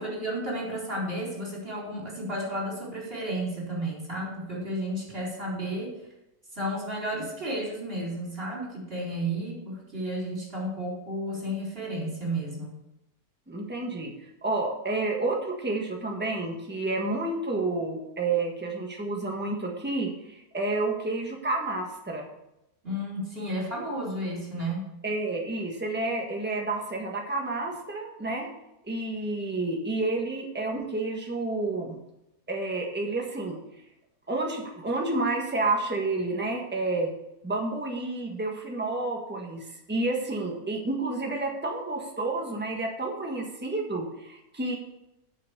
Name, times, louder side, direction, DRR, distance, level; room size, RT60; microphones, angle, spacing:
voice 1, 0.0-5.9 6.5-12.8 22.8-24.9, right 1 dB, 40° right, -4 dB, 4.5 m, -32 dB
voice 2, 13.5-14.1 14.4-22.3 25.0-28.5 28.8-32.0 32.5-33.6 34.3-37.1 37.4-44.8, right 2 dB, 5° right, 0 dB, 1.5 m, -30 dB
8.5 x 6.9 x 6.8 m, 0.87 s
omnidirectional pair, 1.6 m